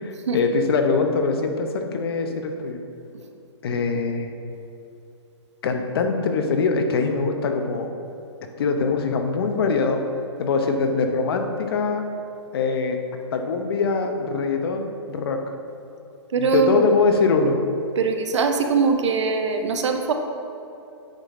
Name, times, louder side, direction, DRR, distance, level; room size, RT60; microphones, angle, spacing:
voice 1, 0.0-2.8 3.6-4.3 5.6-7.9 8.6-10.0 10.4-12.0 12.5-13.0 13.3-15.4 16.4-17.7, left 4 dB, 55° left, 5 dB, 0.7 m, -23 dB
voice 2, 16.3-17.0 18.0-20.1, right 5 dB, 85° right, 5 dB, 0.7 m, -22 dB
8.9 x 3.8 x 3.7 m, 2.8 s
hypercardioid pair, 160°, 15 cm